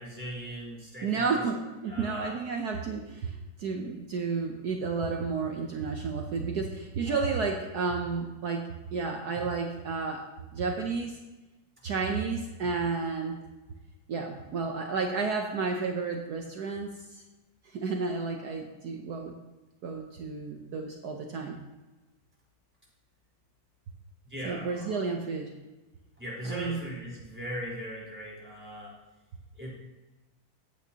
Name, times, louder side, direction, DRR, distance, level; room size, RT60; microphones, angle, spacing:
voice 1, 0.0-1.4 1.9-2.4 7.1-7.3 24.3-25.1 26.2-29.0 29.6-29.7, equal, 5° right, -6 dB, 3.8 m, -39 dB
voice 2, 1.0-10.3 10.5-11.2 11.8-13.4 14.1-17.2 17.6-19.4 19.8-21.6 24.4-25.5 26.4-26.8, right 4 dB, 60° right, 2 dB, 1.2 m, -32 dB
15.0 x 8.6 x 2.9 m, 1.1 s
omnidirectional pair, 2.2 m